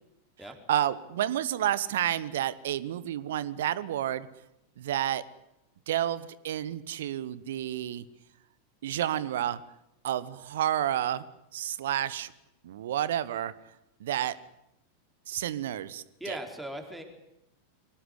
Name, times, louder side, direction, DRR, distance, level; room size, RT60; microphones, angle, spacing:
voice 1, 0.7-4.3 4.8-5.2 5.9-8.0 8.8-9.6 10.0-11.2 11.5-12.3 12.6-13.5 14.0-14.4 15.3-16.4, right 11 dB, 60° right, 18 dB, 1.2 m, -30 dB
voice 2, 16.2-17.0, right 1 dB, 5° right, 4 dB, 4.3 m, -38 dB
23.5 x 19.0 x 10.0 m, 0.85 s
figure-of-eight pair, 90°, 0 cm